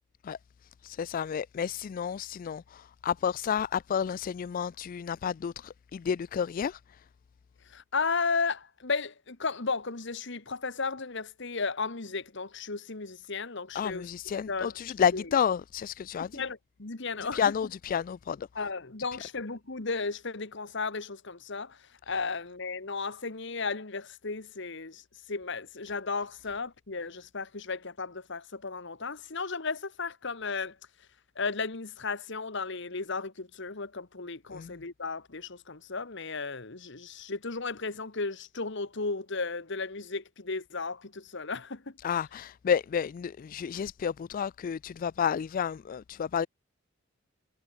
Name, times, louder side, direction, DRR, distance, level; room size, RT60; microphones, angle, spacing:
voice 1, 0.8-7.0 13.7-16.4 17.3-18.5 34.5-34.8 42.0-46.5, left 7 dB, 45° left, 0.3 m, -31 dB
voice 2, 7.7-14.1 14.5-14.7 15.1-15.2 16.3-17.5 18.5-25.0 25.3-30.8 31.3-42.0, left 4 dB, 65° left, 1.7 m, -34 dB
head